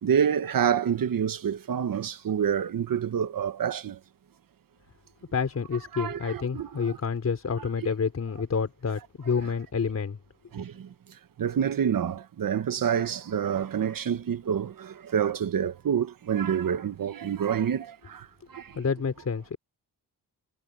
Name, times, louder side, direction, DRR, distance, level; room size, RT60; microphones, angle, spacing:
voice 1, 0.0-4.0 5.9-7.0 10.5-10.9 11.4-18.8, right 8 dB, 55° right, 1.3 m, -28 dB
voice 2, 5.3-10.2 18.7-19.6, left 5 dB, 40° left, 4.3 m, -29 dB
wide cardioid pair, 155°, 41 cm